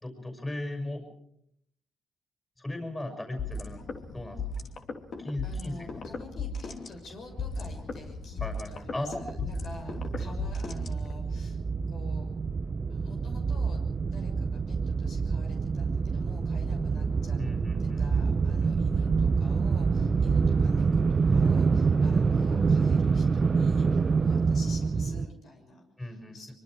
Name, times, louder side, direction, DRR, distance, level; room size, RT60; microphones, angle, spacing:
voice 1, 0.0-1.1 2.6-3.8 4.1-4.4 5.2-6.1 8.4-9.2 10.1-10.3 17.4-18.8 26.0-26.5, left 1 dB, 15° left, 5 dB, 6.5 m, -37 dB
sound 1, 3.4-11.4, left 3 dB, 50° left, 2.9 m, -37 dB
voice 2, 5.4-11.6 11.9-12.3 12.9-17.4 17.8-26.5, left 2 dB, 65° left, 2 dB, 6.4 m, -48 dB
sound 2, 7.9-8.0 8.3-8.4 8.6-25.3, right 5 dB, 35° right, 0.7 m, -26 dB
24.5 x 24.0 x 4.9 m, 0.72 s
cardioid pair, 90°, 0 cm